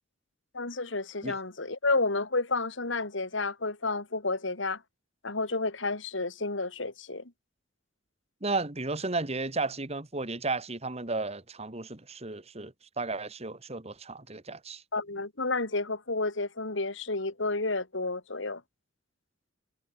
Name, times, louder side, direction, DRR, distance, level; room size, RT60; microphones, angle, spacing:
voice 1, 0.5-4.8 5.2-7.3 14.9-18.6, left 3 dB, 75° left, 2.9 m, -31 dB
voice 2, 8.4-14.8, right 3 dB, 35° right, 1.8 m, -34 dB
head